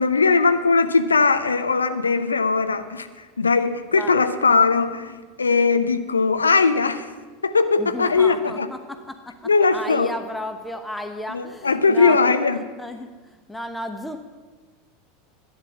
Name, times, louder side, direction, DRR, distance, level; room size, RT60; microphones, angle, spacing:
voice 1, 0.0-3.1 3.4-7.1 7.4-8.7 9.5-10.1 11.3-12.6, left 4 dB, 85° left, 10 dB, 0.6 m, -19 dB
voice 2, 7.8-12.2 12.5-14.2, left 1 dB, 5° left, 7 dB, 1.0 m, -33 dB
12.0 x 9.2 x 7.5 m, 1.4 s
figure-of-eight pair, 80°, 0 cm